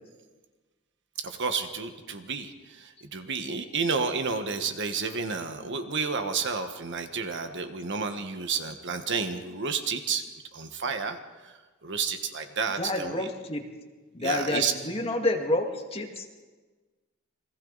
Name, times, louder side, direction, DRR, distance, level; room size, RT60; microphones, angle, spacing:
voice 1, 1.2-10.2 10.5-11.2 11.4-11.5 11.8-13.3 14.2-14.7, right 5 dB, 60° right, 7 dB, 1.5 m, -31 dB
voice 2, 12.8-13.6 14.1-16.4, left 1 dB, 30° left, 2 dB, 2.2 m, -29 dB
29.5 x 22.0 x 4.1 m, 1.3 s
head